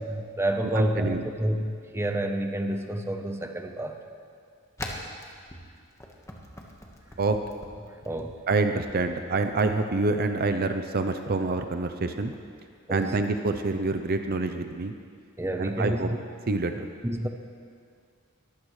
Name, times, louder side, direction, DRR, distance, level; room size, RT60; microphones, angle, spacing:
voice 1, 0.0-4.0 7.7-8.4 12.9-13.2 15.4-16.2 17.0-17.3, right 1 dB, 10° right, 4 dB, 0.8 m, -29 dB
voice 2, 0.7-1.2 7.2-7.4 8.5-12.3 12.9-14.9 15.6-16.1 16.5-16.9, right 3 dB, 45° right, 7 dB, 0.6 m, -26 dB
sound 1, 4.8-8.3 8.7-9.0 9.4-9.7 10.2-10.5 11.1-11.4 12.1-12.4 13.0-13.3 14.1-14.4, left 1 dB, 15° left, 1.4 m, -42 dB
22.0 x 15.0 x 3.2 m, 2.2 s
head